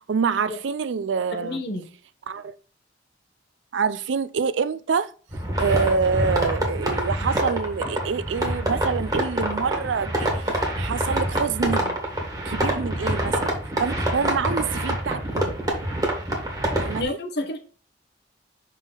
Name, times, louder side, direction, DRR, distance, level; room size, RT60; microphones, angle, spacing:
voice 1, 0.1-1.6 2.3-2.5 3.7-5.1 5.6-12.0 12.5-13.5 13.8-15.6 16.8-17.2, right 5 dB, 85° right, 0.4 m, -26 dB
voice 2, 1.4-1.9 17.0-17.6, left 2 dB, 60° left, 1.1 m, -29 dB
sound 1, 5.3-17.0, right 1 dB, 20° right, 1.6 m, -26 dB
6.0 x 4.1 x 3.9 m
head